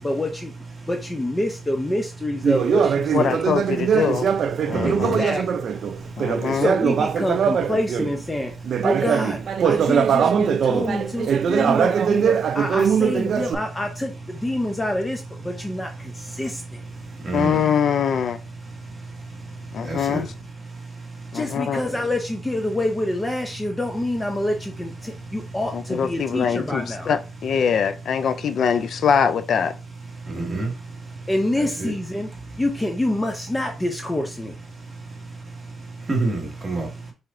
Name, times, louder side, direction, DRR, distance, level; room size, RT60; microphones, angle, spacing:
voice 1, 0.0-0.5 0.9-3.5 4.8-5.7 6.6-8.5 8.8-16.8 21.3-27.1 31.3-32.3 32.6-34.6, left 1 dB, 10° left, 0.6 m, -27 dB
Conversation, 2.4-8.2 8.6-13.5, right 7 dB, 55° right, 0.4 m, -21 dB
voice 2, 3.1-4.3 4.6-5.2 6.2-6.7 17.3-18.4 19.7-20.3 21.3-21.8 25.7-29.7, left 7 dB, 60° left, 0.3 m, -23 dB
voice 3, 4.7-5.2 17.2-17.6 19.9-20.2 30.3-30.7 31.8-31.9 36.1-36.9, right 2 dB, 25° right, 1.7 m, -26 dB
4.7 x 4.1 x 2.6 m
cardioid pair, 130°, 0 cm